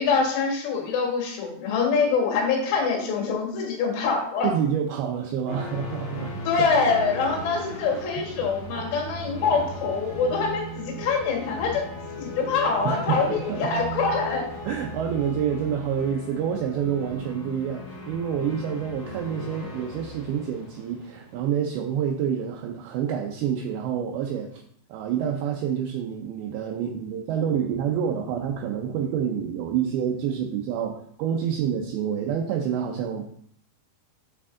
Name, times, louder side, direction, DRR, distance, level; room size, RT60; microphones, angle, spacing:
voice 1, 0.0-4.5 6.5-11.9 12.2-14.4, left 5 dB, 80° left, 1 dB, 3.6 m, -25 dB
voice 2, 4.4-6.7 8.2-8.3 9.4-9.6 12.8-13.7 14.6-24.6 24.9-33.3, right 8 dB, 80° right, 1 dB, 2.2 m, -28 dB
sound 1, 5.5-22.3, equal, 50° left, 2.2 m, -37 dB
8.3 x 3.6 x 3.7 m, 0.64 s
omnidirectional pair, 5.0 m